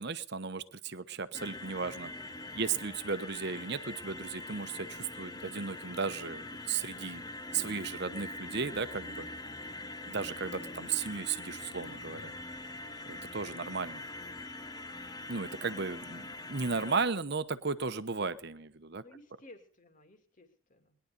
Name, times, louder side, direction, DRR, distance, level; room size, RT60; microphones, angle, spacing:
voice 1, 0.0-2.1 2.6-7.2 7.5-9.3 10.1-12.3 13.1-14.0 15.3-19.0, right 5 dB, 55° right, 13 dB, 1.0 m, -35 dB
sound 1, 1.3-17.1, left 2 dB, 20° left, 1.0 m, -43 dB
sound 2, 10.8-19.0, left 1 dB, 80° left, 2.0 m, -62 dB
voice 2, 19.0-21.0, left 1 dB, 40° left, 6 dB, 2.7 m, -58 dB
21.0 x 11.5 x 5.2 m, 0.38 s
head